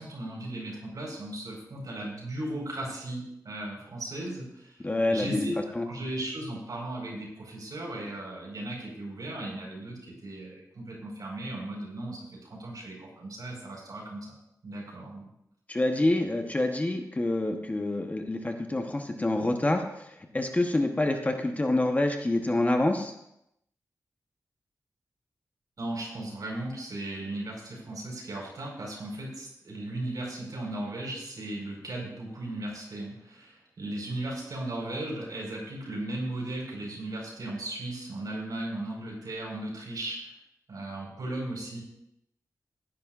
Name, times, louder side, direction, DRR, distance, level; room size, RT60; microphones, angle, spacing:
voice 1, 0.0-4.8 5.1-5.5 5.8-14.3 14.6-15.3 25.8-40.3 40.7-41.8, right 1 dB, 70° right, -2 dB, 4.9 m, -36 dB
voice 2, 4.8-5.4 5.8-5.9 15.7-23.1, left 2 dB, 25° left, 4 dB, 1.1 m, -27 dB
16.0 x 10.5 x 2.5 m, 0.81 s
wide cardioid pair, 115°, 7 cm